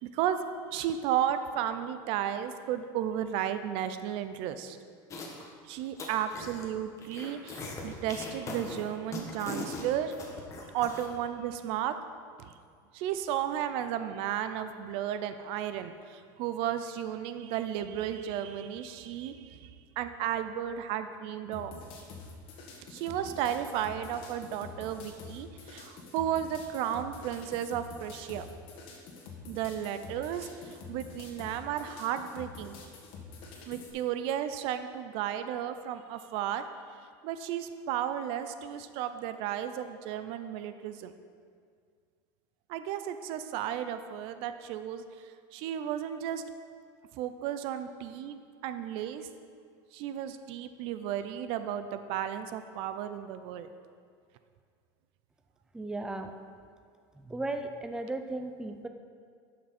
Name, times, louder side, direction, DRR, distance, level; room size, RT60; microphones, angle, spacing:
voice 1, 0.7-4.8 5.6-10.1 10.7-11.9 12.4-12.5 12.9-19.7 20.0-21.7 22.9-28.5 29.5-32.7 33.7-36.6 37.2-41.1 42.7-46.4 47.1-49.3 49.9-53.7, right 10 dB, 60° right, 10 dB, 0.5 m, -34 dB
sound 1, 5.1-5.5 5.8-6.7 7.0-11.1, left 3 dB, 30° left, 1.3 m, -40 dB
sound 2, 21.5-33.9, left 4 dB, 60° left, 1.7 m, -47 dB
voice 2, 55.7-56.3 57.2-58.9, right 2 dB, 5° right, 6 dB, 0.5 m, -36 dB
12.0 x 6.0 x 4.3 m, 2.1 s
supercardioid pair, 140°, 11 cm